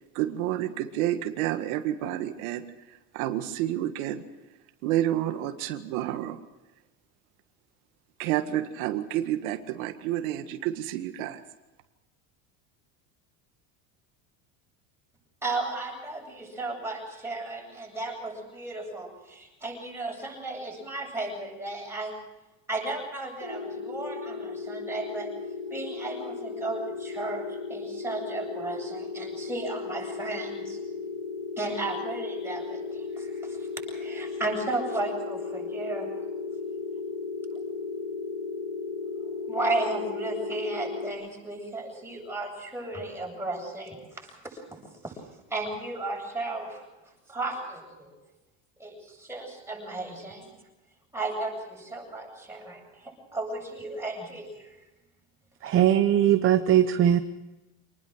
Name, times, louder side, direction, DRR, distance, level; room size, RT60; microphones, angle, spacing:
voice 1, 0.2-2.6 3.1-4.2 4.8-6.4 8.2-11.4, right 12 dB, 85° right, 7 dB, 1.9 m, -29 dB
voice 2, 15.4-22.2 22.7-25.3 25.7-30.8 31.6-36.2 39.5-45.1 45.5-46.9 47.3-48.1 48.8-50.5 51.1-54.8, right 2 dB, 5° right, -1 dB, 7.9 m, -34 dB
sound 1, 23.4-41.1, left 4 dB, 70° left, 6.7 m, -35 dB
voice 3, 55.6-57.2, right 10 dB, 30° right, 9 dB, 0.9 m, -20 dB
26.0 x 20.0 x 6.4 m, 1.1 s
cardioid pair, 150°, 41 cm